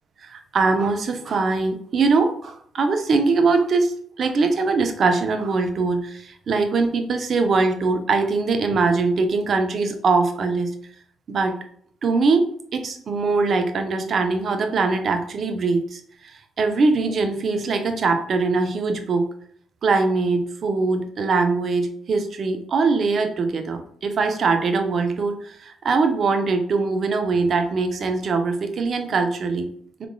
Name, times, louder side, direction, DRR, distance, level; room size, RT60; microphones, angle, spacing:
voice 1, 0.2-10.7 11.3-11.5 12.0-16.0 16.6-19.3 19.8-29.7, right 4 dB, 55° right, 6 dB, 0.8 m, -22 dB
4.9 x 3.5 x 2.3 m, 0.62 s
cardioid pair, 90°, 0 cm